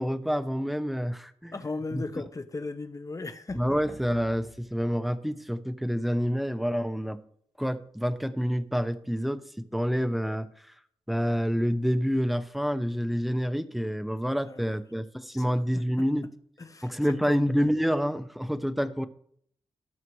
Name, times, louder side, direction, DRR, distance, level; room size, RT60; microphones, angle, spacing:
voice 1, 0.0-1.6 1.9-2.0 3.5-7.2 7.6-10.7 11.1-16.3 16.8-19.1, equal, ahead, 11 dB, 0.8 m, -28 dB
voice 2, 1.5-3.8 14.4-14.8 15.3-15.4 15.7-16.0 16.6-16.9 17.2-17.5, left 3 dB, 30° left, 10 dB, 1.0 m, -37 dB
sound 1, 3.5-5.7 6.0-6.1, right 3 dB, 75° right, 4.7 m, -53 dB
18.5 x 6.5 x 3.2 m, 0.64 s
wide cardioid pair, 90°, 11 cm